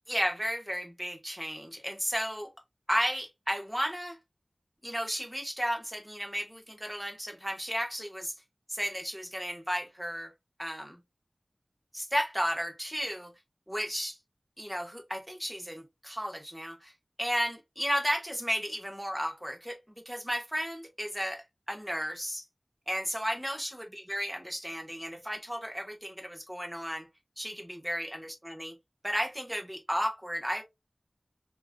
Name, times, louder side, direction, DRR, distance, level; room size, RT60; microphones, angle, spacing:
voice 1, 0.1-2.5 2.9-4.2 4.8-8.3 8.7-10.3 10.6-11.0 11.9-13.3 13.7-14.2 14.6-16.9 17.2-19.8 20.0-22.4 22.9-27.1 27.4-28.7 29.0-30.6, equal, 10° right, 1.3 m, -33 dB
5.0 x 3.0 x 2.3 m
wide cardioid pair, 55°, 0 cm